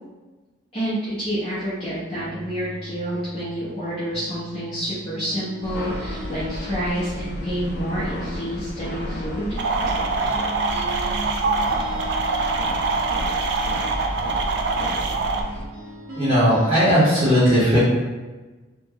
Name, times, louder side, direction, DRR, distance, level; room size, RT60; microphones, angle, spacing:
voice 1, 0.7-9.6, equal, 25° left, -12 dB, 0.8 m, -28 dB
sound 1, 2.1-9.9 10.2-17.0, equal, 80° right, 1.0 m, -40 dB
sound 2, 5.6-15.7, left 1 dB, 50° left, 0.4 m, -32 dB
sound 3, 9.6-15.4, right 3 dB, 55° right, 0.3 m, -24 dB
voice 2, 16.1-17.8, equal, 25° right, -11 dB, 0.8 m, -17 dB
3.1 x 2.1 x 3.7 m, 1.2 s
head